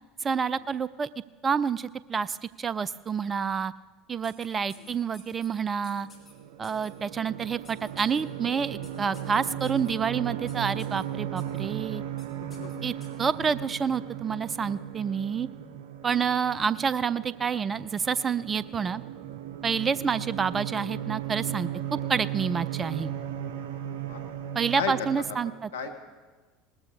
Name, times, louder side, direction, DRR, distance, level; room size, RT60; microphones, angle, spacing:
voice 1, 0.2-1.1 1.4-3.7 4.1-6.1 6.6-12.0 12.8-12.9 13.2-15.5 16.0-19.0 19.6-23.1 24.5-25.7, right 6 dB, 25° right, 19 dB, 0.3 m, -28 dB
sound 1, 4.2-5.5 5.8-6.3 6.6-6.9 7.6-8.2 8.8-9.9 10.5-11.0 11.4-11.6 12.2-12.3 12.5-13.3, left 3 dB, 20° left, 3.5 m, -53 dB
sound 2, 5.9-25.4, right 10 dB, 65° right, 0.7 m, -37 dB
voice 2, 23.9-24.2 24.7-25.1 25.4-26.0, left 6 dB, 75° left, 5 dB, 1.2 m, -36 dB
19.5 x 14.0 x 2.8 m, 1.3 s
figure-of-eight pair, 70°, 0 cm